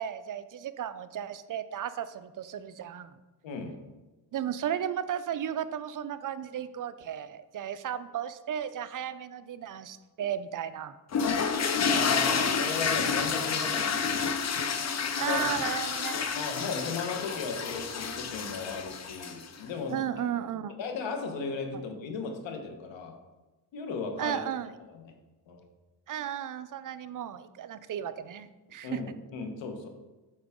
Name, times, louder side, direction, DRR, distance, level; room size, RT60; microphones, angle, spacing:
voice 1, 0.0-3.2 4.3-11.0 15.2-16.3 19.9-20.7 24.2-24.7 26.1-29.0, right 9 dB, 45° right, 12 dB, 0.5 m, -34 dB
voice 2, 3.4-3.8 11.9-14.3 15.2-15.7 16.3-20.0 20.8-23.2 23.7-24.4 24.9-25.2 25.5-25.6 28.8-29.9, left 4 dB, 80° left, 5 dB, 1.2 m, -36 dB
sound 1, 11.1-19.6, left 6 dB, 35° left, 0.7 m, -29 dB
8.8 x 4.8 x 3.6 m, 1.1 s
cardioid pair, 90°, 44 cm